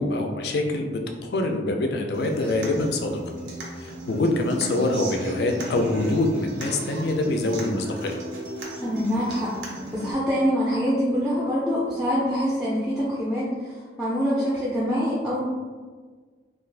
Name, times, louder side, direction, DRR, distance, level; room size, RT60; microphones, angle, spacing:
voice 1, 0.0-3.2 3.8-8.2, left 2 dB, 60° left, 3 dB, 0.4 m, -25 dB
Human voice / Acoustic guitar, 2.1-10.1, right 1 dB, 80° right, 0.6 m, -35 dB
voice 2, 8.8-15.4, equal, 5° right, -8 dB, 0.4 m, -25 dB
2.4 x 2.3 x 3.3 m, 1.5 s
head